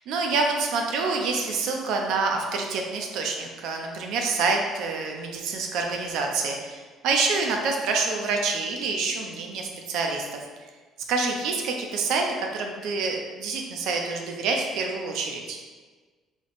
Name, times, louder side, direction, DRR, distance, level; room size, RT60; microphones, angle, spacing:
voice 1, 0.1-10.3 11.1-15.6, right 4 dB, 75° right, 2 dB, 0.5 m, -27 dB
3.1 x 2.1 x 4.0 m, 1.4 s
cardioid pair, 130°, 0 cm